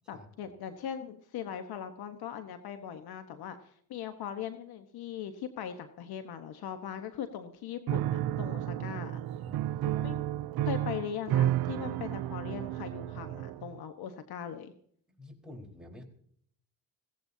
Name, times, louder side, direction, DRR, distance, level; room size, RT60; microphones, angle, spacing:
voice 1, 0.1-9.1 10.0-10.2 10.6-14.7, left 9 dB, 80° left, 8 dB, 1.3 m, -40 dB
Piano, 7.9-13.8, right 12 dB, 80° right, 0.6 m, -32 dB
voice 2, 9.4-10.1 15.2-16.0, left 1 dB, ahead, -1 dB, 4.5 m, -49 dB
22.0 x 17.0 x 2.8 m, 0.63 s
cardioid pair, 80°, 37 cm